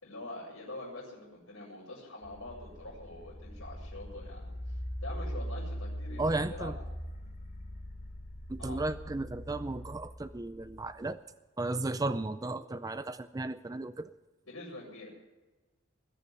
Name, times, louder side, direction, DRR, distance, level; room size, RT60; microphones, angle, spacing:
voice 1, 0.0-6.7 8.6-8.8 14.4-15.1, left 2 dB, 70° left, -10 dB, 6.4 m, -45 dB
sound 1, 2.2-11.0, equal, 40° left, 2.8 m, -41 dB
voice 2, 6.2-6.8 8.5-11.2 11.6-14.1, right 2 dB, 15° right, 12 dB, 0.4 m, -34 dB
20.5 x 7.0 x 9.9 m, 1.1 s
head